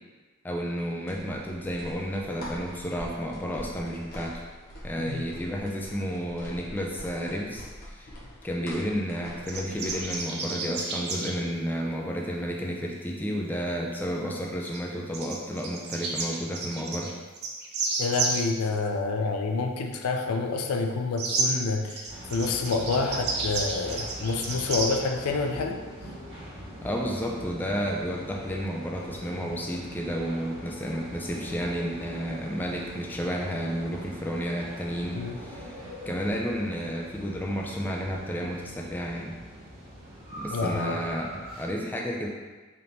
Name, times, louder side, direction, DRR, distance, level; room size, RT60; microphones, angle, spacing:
voice 1, 0.4-4.4 4.8-8.1 8.4-17.1 26.8-35.8 36.1-39.3 40.4-42.3, equal, 10° left, -1 dB, 0.3 m, -31 dB
sound 1, 1.1-10.2, equal, 45° left, 0.8 m, -44 dB
sound 2, 9.5-11.3 14.6-14.8 15.1-18.5 21.2-21.5 21.9-25.0, right 3 dB, 50° right, 0.5 m, -31 dB
voice 2, 18.0-25.8 35.1-35.4 40.5-41.0, left 4 dB, 80° left, 4 dB, 0.4 m, -28 dB
sound 3, 22.1-41.6, equal, 25° right, 1.4 m, -42 dB
3.5 x 2.9 x 3.9 m, 1.3 s
head